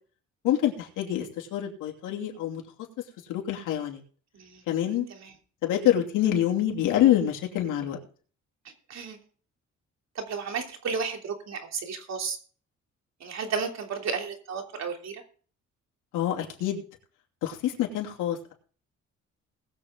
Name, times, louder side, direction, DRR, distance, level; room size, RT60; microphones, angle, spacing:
voice 1, 0.4-2.6 3.3-4.0 4.7-5.1 5.6-8.0 16.1-16.8 17.4-18.5, left 11 dB, 90° left, 1 dB, 2.8 m, -26 dB
voice 2, 10.1-12.4 13.2-15.2, right 5 dB, 60° right, 3 dB, 3.2 m, -33 dB
20.5 x 7.4 x 3.8 m, 0.43 s
cardioid pair, 90°, 30 cm